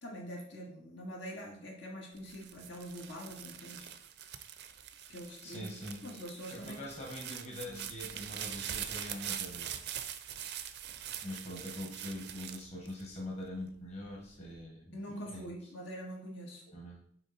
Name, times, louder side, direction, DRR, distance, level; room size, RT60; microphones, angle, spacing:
voice 1, 0.0-3.9 5.1-6.8 7.7-7.9 14.9-16.6, equal, 70° left, -2 dB, 2.0 m, -44 dB
sound 1, 2.2-13.5 14.1-14.6, right 10 dB, 60° right, 0.5 m, -43 dB
voice 2, 5.4-6.1 6.5-9.7 11.2-15.0 15.3-15.5 16.7-17.0, left 1 dB, 35° left, -3 dB, 1.6 m, -43 dB
8.8 x 3.7 x 4.3 m, 0.63 s
head